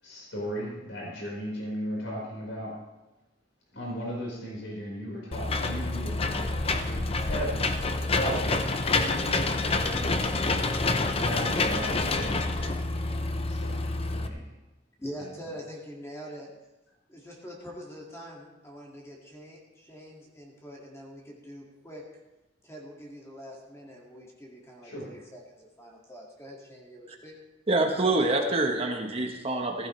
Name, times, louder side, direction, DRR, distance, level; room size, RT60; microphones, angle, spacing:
voice 1, 0.0-2.7 3.7-7.8 8.1-8.6 9.2-9.5 9.9-10.3 11.1-12.5 13.5-14.4 15.2-15.3 24.8-25.1, equal, 85° left, -3 dB, 4.9 m, -36 dB
Engine / Mechanisms, 5.3-14.3, left 3 dB, 30° left, 0.8 m, -27 dB
voice 2, 15.0-16.5 17.1-22.0 22.6-27.4, equal, 15° left, -2 dB, 2.2 m, -44 dB
voice 3, 27.7-29.9, right 2 dB, 35° right, 3 dB, 1.1 m, -26 dB
16.0 x 14.5 x 3.3 m, 1.0 s
head